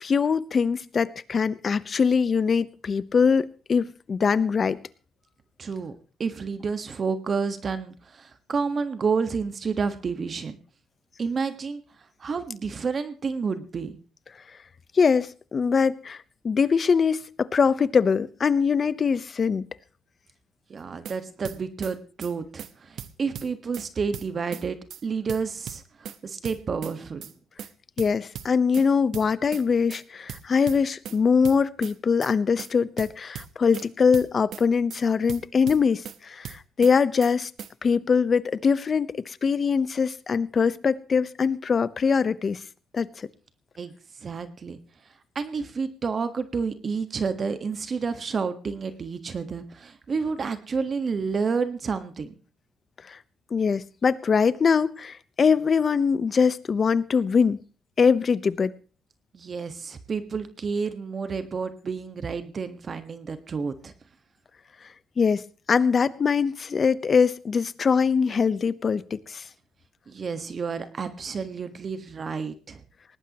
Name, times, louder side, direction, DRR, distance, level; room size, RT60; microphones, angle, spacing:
voice 1, 0.0-4.8 14.9-16.2 16.4-19.6 28.0-37.5 37.8-42.6 42.9-43.3 53.1-53.2 53.5-57.6 58.0-58.7 65.2-65.4 65.7-69.4, left 5 dB, 45° left, 16 dB, 0.9 m, -22 dB
voice 2, 5.6-5.9 6.2-10.6 11.2-11.8 12.2-13.9 20.7-27.3 43.8-43.9 44.2-44.8 45.3-52.3 59.3-63.9 70.1-72.8, right 5 dB, 45° right, 10 dB, 1.5 m, -30 dB
sound 1, 20.8-21.2 21.4-21.9 22.2-22.3 22.6-22.7 23.0-23.9 24.1-24.6 24.9-25.0 25.3-26.2 26.4-26.9 27.2-27.3 27.6-27.7 28.0-28.9 29.1-29.6 29.9-30.0 30.3-31.2 31.4-31.9 32.2-32.3 32.6-32.7 33.0-33.9 34.1-34.6 34.9-35.0 35.3-36.2 36.4-36.9 37.2-37.3 37.6-37.7, right 9 dB, 70° right, 1.1 m, -38 dB
19.5 x 18.0 x 3.0 m, 0.38 s
cardioid pair, 90°, 0 cm